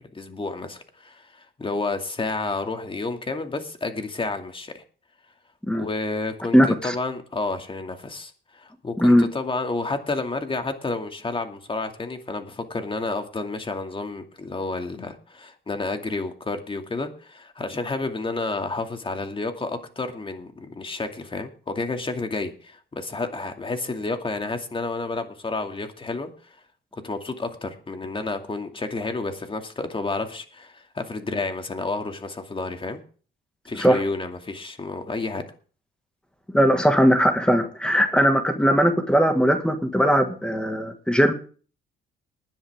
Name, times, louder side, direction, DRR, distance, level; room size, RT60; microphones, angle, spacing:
voice 1, 0.1-4.8 5.7-26.6 26.9-33.0 33.7-35.4, left 3 dB, 25° left, 6 dB, 2.4 m, -30 dB
voice 2, 6.5-7.0 9.0-9.3 33.8-34.0 36.5-41.3, equal, 5° left, 7 dB, 1.9 m, -19 dB
19.5 x 10.0 x 3.7 m, 0.41 s
cardioid pair, 90°, 20 cm